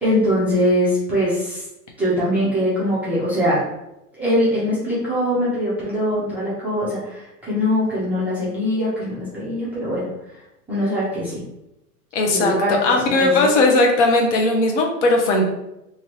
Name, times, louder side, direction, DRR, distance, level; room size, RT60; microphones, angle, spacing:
voice 1, 0.0-1.6 2.0-3.6 4.2-10.1 10.7-11.4 12.3-12.8 13.2-13.6, equal, 5° right, -11 dB, 0.5 m, -22 dB
voice 2, 12.1-12.5 12.8-15.5, left 2 dB, 45° left, 1 dB, 0.8 m, -17 dB
2.7 x 2.6 x 3.1 m, 0.89 s
hypercardioid pair, 115°, 48 cm